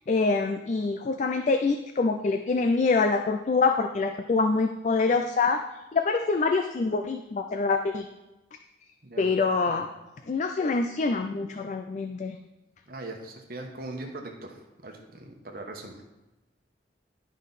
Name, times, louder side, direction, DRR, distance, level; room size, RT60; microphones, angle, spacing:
voice 1, 0.1-5.6 5.9-8.1 9.2-9.9 10.3-12.4, left 4 dB, 40° left, 6 dB, 0.3 m, -25 dB
voice 2, 12.9-16.0, right 2 dB, 55° right, 2 dB, 1.1 m, -40 dB
10.5 x 5.2 x 4.1 m, 1.0 s
head